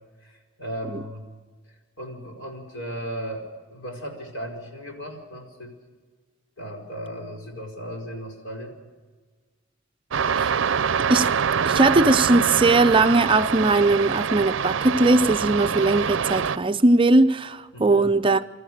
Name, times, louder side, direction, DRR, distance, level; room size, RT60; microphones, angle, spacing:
voice 1, 0.2-1.2 2.0-5.8 6.6-8.8 17.7-18.1, equal, 85° left, 5.0 m, -36 dB
sound 1, 10.1-16.6, right 6 dB, 75° right, 0.5 m, -25 dB
voice 2, 11.7-18.4, right 2 dB, 25° right, 0.5 m, -19 dB
26.0 x 14.0 x 7.7 m
head